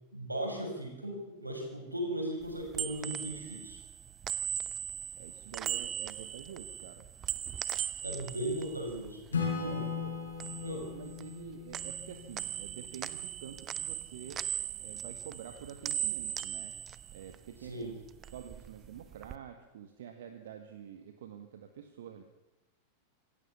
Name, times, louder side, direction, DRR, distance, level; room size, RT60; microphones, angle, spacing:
voice 1, 0.1-3.8 8.0-9.8 10.6-10.8 17.6-17.9, right 1 dB, 85° right, 2 dB, 5.8 m, -37 dB
sound 1, 2.4-9.7 10.0-11.4 11.7-17.7 18.0-19.4, right 10 dB, 30° right, 0.9 m, -39 dB
voice 2, 5.1-7.0 9.8-10.2 10.7-14.5 14.8-16.7 17.1-18.0 18.3-22.2, right 9 dB, 60° right, 6 dB, 1.7 m, -48 dB
Acoustic guitar / Strum, 9.3-12.9, left 6 dB, 70° left, 5.8 m, -37 dB
26.0 x 14.5 x 7.0 m, 1.0 s
figure-of-eight pair, 90°, 0 cm